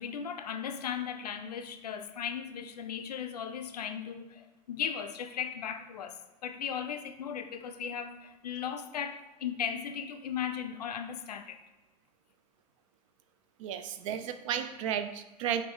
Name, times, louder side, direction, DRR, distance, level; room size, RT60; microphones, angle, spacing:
voice 1, 0.0-11.6, left 8 dB, 75° left, 0.4 m, -37 dB
voice 2, 13.6-15.6, right 9 dB, 50° right, 0.4 m, -33 dB
4.4 x 2.5 x 3.1 m
figure-of-eight pair, 85°, 21 cm